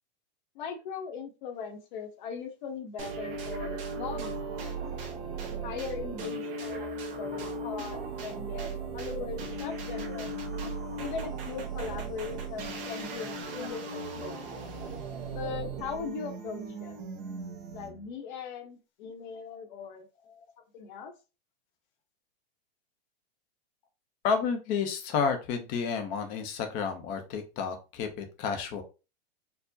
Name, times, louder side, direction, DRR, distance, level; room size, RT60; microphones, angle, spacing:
voice 1, 0.5-4.4 5.6-10.3 11.0-14.7 15.3-17.1 17.7-20.1 20.7-21.1, left 6 dB, 50° left, 6 dB, 0.8 m, -39 dB
sound 1, 3.0-18.1, right 3 dB, 60° right, 1.3 m, -37 dB
voice 2, 24.2-28.8, left 6 dB, 25° left, 6 dB, 0.5 m, -31 dB
4.4 x 2.0 x 2.6 m, 0.30 s
supercardioid pair, 165°, 31 cm